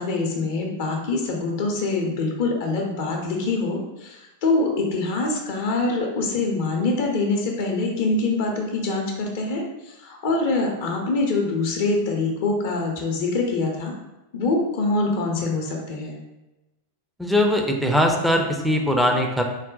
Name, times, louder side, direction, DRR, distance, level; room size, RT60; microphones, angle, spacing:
voice 1, 0.0-13.9 14.3-16.2, left 3 dB, 50° left, 1 dB, 0.6 m, -24 dB
voice 2, 17.2-19.4, equal, ahead, 1 dB, 0.5 m, -20 dB
4.0 x 2.2 x 3.7 m, 1.0 s
figure-of-eight pair, 90°, 0 cm